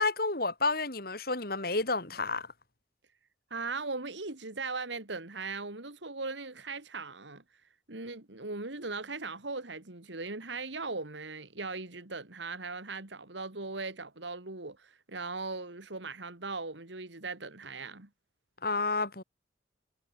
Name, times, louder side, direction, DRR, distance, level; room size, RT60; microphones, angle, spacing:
voice 1, 0.0-2.5 18.6-19.2, left 3 dB, 55° left, 5.1 m, -30 dB
voice 2, 3.5-7.4 7.9-18.1, right 3 dB, 80° right, 2.5 m, -39 dB
head